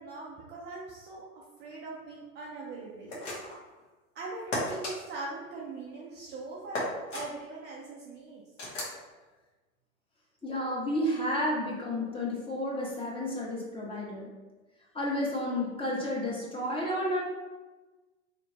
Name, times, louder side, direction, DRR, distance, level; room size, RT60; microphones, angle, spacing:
voice 1, 0.0-3.2 4.1-6.8 7.1-8.4, right 3 dB, 25° right, -4 dB, 0.5 m, -41 dB
sound 1, 3.1-3.7 4.5-4.9 6.7-7.3 8.6-9.0, left 1 dB, 65° left, 1.4 m, -34 dB
voice 2, 10.4-14.3 14.9-17.2, left 1 dB, 15° left, -4 dB, 0.9 m, -31 dB
3.1 x 3.0 x 2.9 m, 1.2 s
hypercardioid pair, 100°, 41 cm